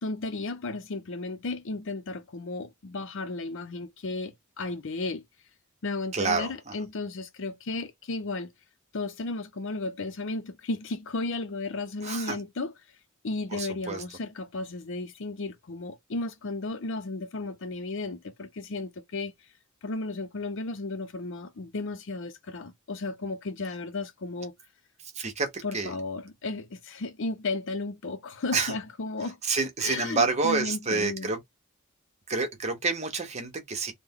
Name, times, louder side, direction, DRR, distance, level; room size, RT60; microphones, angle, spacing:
voice 1, 0.0-5.2 5.8-8.5 8.9-12.7 13.2-19.3 19.8-24.5 25.6-29.4 29.8-31.3, left 3 dB, 60° left, 0.6 m, -34 dB
voice 2, 6.1-6.7 12.0-12.4 13.5-14.0 25.1-25.9 28.5-28.7 29.4-31.4 32.3-33.9, right 4 dB, 30° right, 1.0 m, -28 dB
3.3 x 2.2 x 3.6 m
head